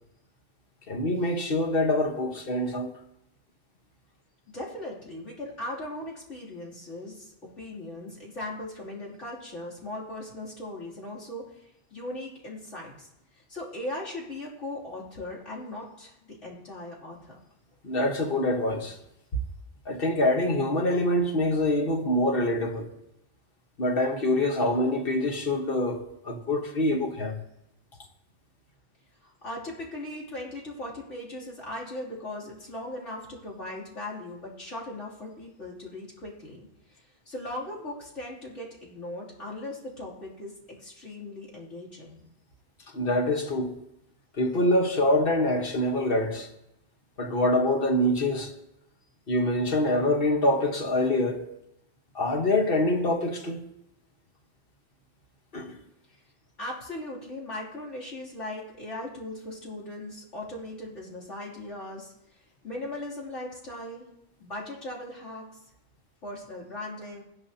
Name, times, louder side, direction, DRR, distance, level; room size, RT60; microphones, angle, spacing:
voice 1, 0.9-2.9 17.8-19.0 19.9-22.9 23.8-27.4 42.9-43.7 44.4-46.5 47.2-48.5 49.3-51.4 52.1-53.6 55.5-55.8, left 1 dB, 50° left, 1.4 m, -25 dB
voice 2, 4.5-11.6 11.9-13.1 13.3-17.4 29.2-36.7 36.9-40.5 40.8-42.2 56.6-62.1 62.6-64.0 64.4-65.5 66.2-67.2, left 1 dB, 90° left, 3.2 m, -38 dB
17.5 x 10.5 x 2.8 m
omnidirectional pair, 1.2 m